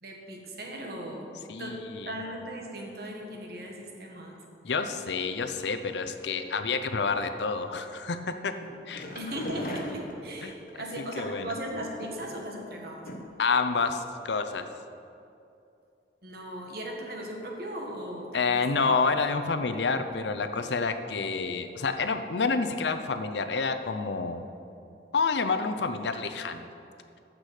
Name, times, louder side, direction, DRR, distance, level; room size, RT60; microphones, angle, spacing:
voice 1, 0.0-1.3 1.6-4.4 9.1-13.1 16.2-18.7, equal, 60° right, 0 dB, 1.7 m, -38 dB
voice 2, 1.5-2.2 4.6-8.5 8.9-9.0 10.4-10.5 11.2-11.5 13.4-14.7 18.3-24.5 25.1-26.7, left 4 dB, 80° left, 8 dB, 0.7 m, -28 dB
sound 1, 8.6-10.7 11.7-12.6 13.0-13.5 13.8-13.9 14.2-14.3, equal, 50° left, 1.3 m, -39 dB
14.5 x 6.1 x 5.0 m, 2.6 s
head